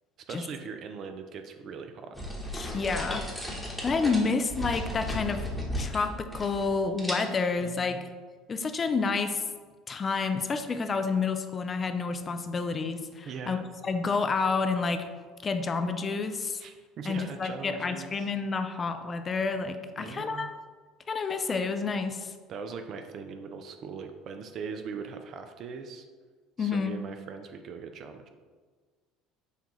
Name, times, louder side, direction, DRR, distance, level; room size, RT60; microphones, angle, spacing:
voice 1, 0.3-2.2 4.0-4.2 7.6-8.0 13.3-13.6 16.6-18.3 20.0-20.5 22.5-26.1 26.6-28.3, right 5 dB, 50° right, 6 dB, 0.3 m, -40 dB
sound 1, 2.1-6.7 7.0-7.6, left 1 dB, 5° left, 1.0 m, -35 dB
voice 2, 2.5-3.3 3.8-5.4 5.8-8.1 8.5-9.4 9.9-13.6 13.8-15.0 15.4-16.6 17.1-20.5 21.1-22.3 26.6-27.0, left 4 dB, 35° left, 8 dB, 0.3 m, -29 dB
5.6 x 2.3 x 2.9 m, 1.5 s
hypercardioid pair, 65°, 0 cm